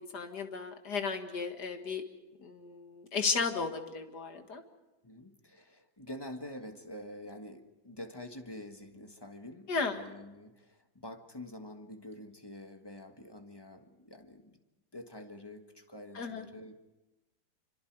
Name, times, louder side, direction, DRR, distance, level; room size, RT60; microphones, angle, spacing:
voice 1, 0.1-2.0 2.4-4.6 9.7-10.0 16.1-16.5, left 5 dB, 60° left, 6 dB, 2.4 m, -34 dB
voice 2, 5.0-14.6 14.9-16.7, left 1 dB, 15° left, 6 dB, 1.4 m, -47 dB
28.0 x 25.5 x 4.8 m, 1.0 s
omnidirectional pair, 2.1 m